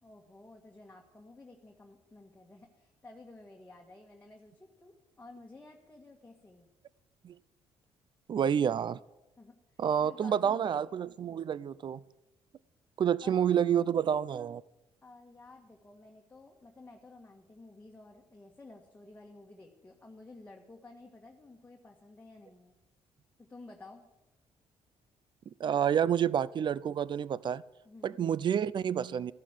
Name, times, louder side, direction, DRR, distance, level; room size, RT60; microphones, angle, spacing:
voice 1, 0.0-6.7 9.4-10.8 13.2-13.9 15.0-22.7 23.4-24.1 27.8-28.2, left 2 dB, 15° left, 0 dB, 1.8 m, -53 dB
voice 2, 8.3-9.0 9.8-12.0 13.0-14.6 25.6-27.6 28.0-29.3, right 8 dB, 45° right, 20 dB, 0.6 m, -29 dB
14.5 x 11.5 x 7.5 m, 0.96 s
cardioid pair, 105°, 11 cm